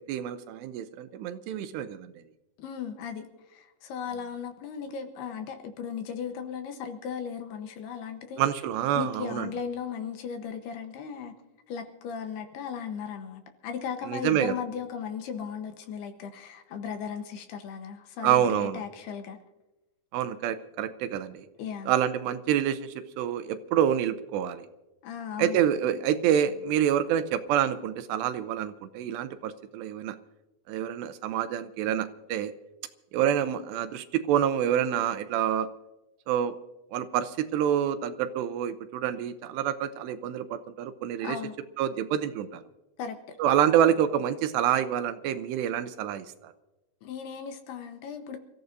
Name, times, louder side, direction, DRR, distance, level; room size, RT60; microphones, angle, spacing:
voice 1, 0.0-2.1 8.4-9.5 14.1-14.6 18.2-18.8 20.1-21.5 21.9-24.7 25.4-30.2 30.7-32.5 33.1-35.7 36.3-36.6 36.9-41.4 41.8-42.6 43.4-46.5, right 10 dB, 80° right, 11 dB, 2.6 m, -27 dB
voice 2, 2.6-8.4 9.0-11.3 11.7-19.4 21.6-21.9 25.0-25.6 41.2-41.5 43.0-43.4 47.0-48.4, left 7 dB, 75° left, 6 dB, 2.8 m, -36 dB
28.5 x 14.5 x 2.7 m, 1.0 s
omnidirectional pair, 5.2 m